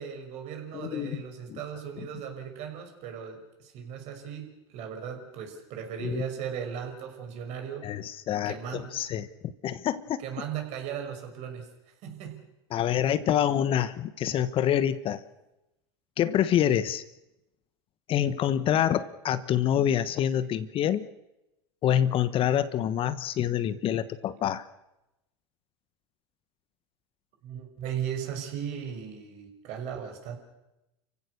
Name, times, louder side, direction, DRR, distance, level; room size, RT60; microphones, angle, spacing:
voice 1, 0.0-7.9 8.4-9.1 10.2-12.5 27.4-30.4, right 8 dB, 55° right, 4 dB, 6.0 m, -37 dB
voice 2, 0.7-1.2 1.5-1.6 2.0-2.1 6.0-6.2 7.8-10.2 12.7-15.2 16.2-17.0 18.1-21.1 21.8-24.6, left 10 dB, 40° left, 14 dB, 1.2 m, -26 dB
30.0 x 16.0 x 6.7 m, 0.92 s
hypercardioid pair, 90°, 14 cm